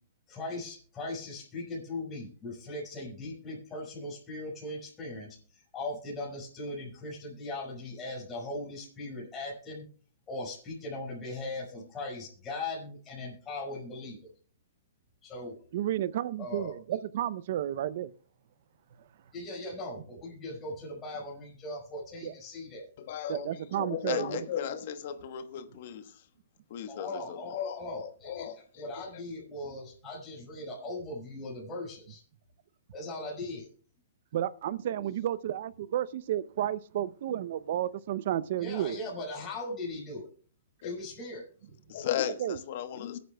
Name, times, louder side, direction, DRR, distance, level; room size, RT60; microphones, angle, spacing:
voice 1, 0.3-9.9 10.3-14.2 15.2-15.6 16.4-16.8 19.3-22.9 26.9-32.2 32.9-33.7 38.6-40.3 40.8-41.4, left 2 dB, 15° left, 5.2 m, -39 dB
voice 2, 15.7-18.1 22.2-22.3 23.3-24.5 34.3-39.0 42.4-42.6, right 11 dB, 55° right, 0.6 m, -32 dB
voice 3, 23.0-26.1 26.7-29.0 40.8-40.9 41.9-43.2, left 9 dB, 50° left, 1.1 m, -36 dB
22.5 x 9.3 x 2.3 m
hypercardioid pair, 150°, 0 cm